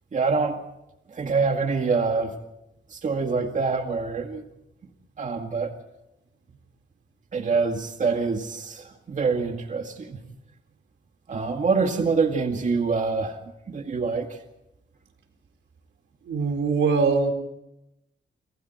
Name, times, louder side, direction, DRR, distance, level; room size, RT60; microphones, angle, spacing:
voice 1, 0.1-0.6 1.1-2.3 2.9-4.4 5.2-5.7 7.3-10.2 11.3-13.4 13.7-14.4, right 4 dB, 40° right, 4 dB, 2.0 m, -25 dB
voice 2, 16.3-17.3, right 4 dB, 80° right, 6 dB, 4.2 m, -22 dB
28.5 x 26.0 x 4.5 m, 0.88 s
wide cardioid pair, 140°, 20 cm